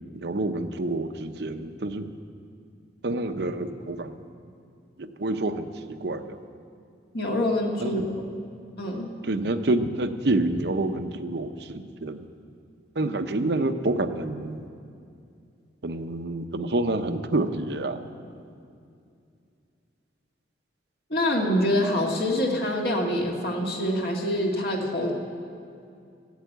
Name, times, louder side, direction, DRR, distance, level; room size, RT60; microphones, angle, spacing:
voice 1, 0.1-2.1 3.0-4.2 5.0-6.4 7.8-8.1 9.2-12.3 13.0-14.7 15.8-18.0, right 2 dB, 65° right, 9 dB, 0.7 m, -28 dB
voice 2, 7.1-8.0 8.8-9.1 21.1-25.1, left 1 dB, 55° left, 0 dB, 1.8 m, -25 dB
13.5 x 8.2 x 9.3 m, 2.4 s
head